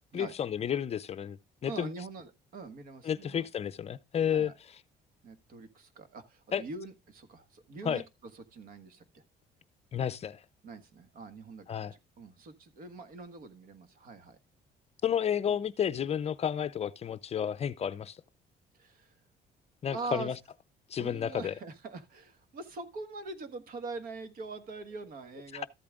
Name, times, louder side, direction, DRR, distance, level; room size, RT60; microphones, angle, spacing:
voice 1, 0.1-1.4 1.6-1.9 3.0-4.8 6.5-6.6 7.8-8.0 9.9-10.4 11.7-11.9 15.0-18.2 19.8-20.3 20.9-21.5, left 8 dB, 40° left, 0.5 m, -31 dB
voice 2, 1.7-3.5 4.3-4.5 5.2-8.0 8.3-9.2 10.6-11.9 12.2-14.4 15.5-15.6 18.8-19.1 19.9-20.4 21.0-25.7, right 3 dB, 60° right, 1.5 m, -43 dB
13.5 x 8.6 x 2.4 m
cardioid pair, 110°, 17 cm